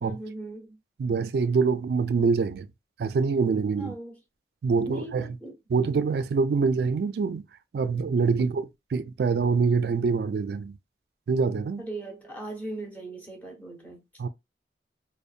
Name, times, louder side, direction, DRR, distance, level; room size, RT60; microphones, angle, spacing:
voice 1, 0.0-0.8 3.8-4.2 4.8-5.5 11.8-14.0, right 2 dB, 10° left, 0.7 m, -38 dB
voice 2, 1.0-2.7 3.0-3.9 4.6-5.3 5.7-7.4 7.7-8.6 8.9-10.8 11.3-11.8 14.2-14.3, right 5 dB, 65° right, 0.3 m, -25 dB
2.7 x 2.1 x 2.4 m
head